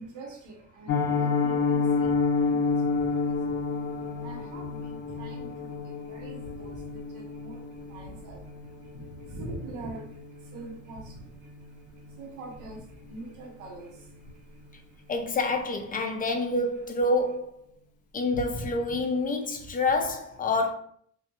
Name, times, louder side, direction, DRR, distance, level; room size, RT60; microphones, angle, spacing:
voice 1, 0.0-15.0 18.3-19.0 20.0-20.1, right 2 dB, 90° right, 0.8 m, -44 dB
Piano, 0.9-11.8 12.0-12.3 12.6-12.7 13.1-13.3 13.6-13.7, left 4 dB, 80° left, 0.5 m, -30 dB
voice 2, 15.1-17.7 18.1-20.7, left 2 dB, 30° left, 0.4 m, -27 dB
2.2 x 2.2 x 2.9 m
cardioid pair, 90°, 30 cm